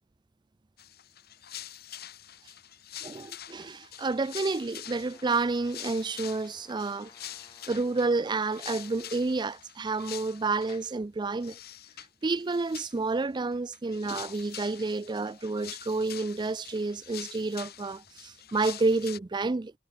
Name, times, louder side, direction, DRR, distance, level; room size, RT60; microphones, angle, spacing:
sound 1, 0.8-10.9 11.4-12.1 12.4-13.2 13.5-19.2, left 11 dB, 55° left, 2.0 m, -45 dB
voice 1, 3.0-7.1 7.7-11.6 12.2-19.7, right 3 dB, 25° right, 0.4 m, -30 dB
Brass instrument, 5.1-9.2, left 3 dB, 25° left, 2.4 m, -59 dB
head